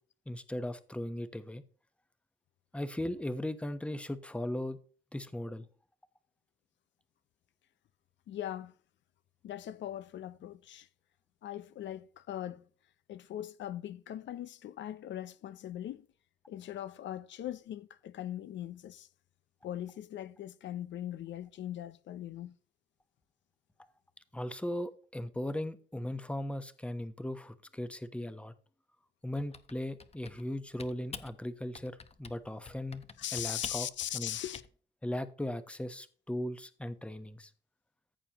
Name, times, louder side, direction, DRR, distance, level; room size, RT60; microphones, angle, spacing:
voice 1, 0.3-1.6 2.7-4.8 5.1-5.7 24.3-28.5 29.2-33.0 33.3-33.9 34.1-34.4 35.0-37.5, left 1 dB, 5° left, 0.9 m, -38 dB
voice 2, 8.3-8.7 9.4-10.9 11.4-12.7 13.1-16.1 16.5-19.1 19.6-22.6 33.2-34.6, left 11 dB, 65° left, 0.6 m, -40 dB
Typing, 29.3-30.5 30.8-31.3 31.7-32.4 32.7-34.7, left 5 dB, 30° left, 0.9 m, -47 dB
14.0 x 6.9 x 2.9 m
cardioid pair, 90°, 20 cm